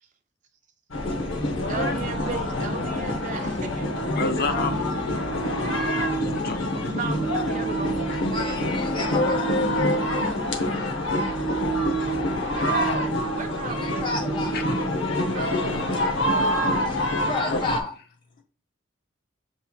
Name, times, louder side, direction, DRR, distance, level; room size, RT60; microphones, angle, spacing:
sound 1, 0.9-17.8, equal, 80° left, 0.8 m, -26 dB
voice 1, 1.7-3.9 6.9-8.2 12.5-14.1 15.1-15.8, right 5 dB, 40° right, 0.4 m, -36 dB
voice 2, 4.1-5.5 6.0-7.2 9.8-9.9 14.5-14.8 16.5-17.0 17.5-17.6, left 3 dB, 50° left, 0.5 m, -32 dB
voice 3, 8.3-9.6 13.7-14.6 16.8-17.9, left 2 dB, 25° left, 0.9 m, -32 dB
6.9 x 3.0 x 2.3 m
head